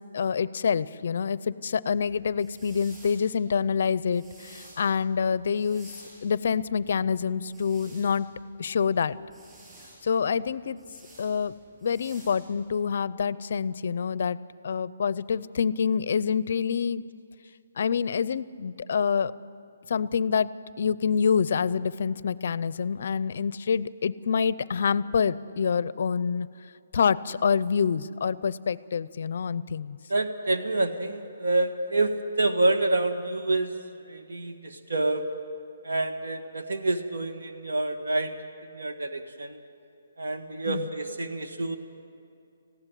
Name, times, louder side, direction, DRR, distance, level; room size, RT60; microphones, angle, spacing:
voice 1, 0.1-6.0 6.2-8.3 8.6-9.2 10.0-10.8 11.2-11.5 11.8-14.4 14.6-17.0 17.8-19.3 19.9-20.5 20.8-26.5 26.9-30.0 40.7-40.9, left 6 dB, 50° left, 19 dB, 0.5 m, -26 dB
sound 1, 1.9-12.9, right 1 dB, 10° right, 7.3 m, -54 dB
voice 2, 30.1-33.8 34.0-35.2 35.8-38.3 38.7-39.6 40.2-41.8, right 2 dB, 90° right, 6 dB, 1.7 m, -27 dB
19.5 x 15.5 x 9.2 m, 2.6 s
hypercardioid pair, 175°, 0 cm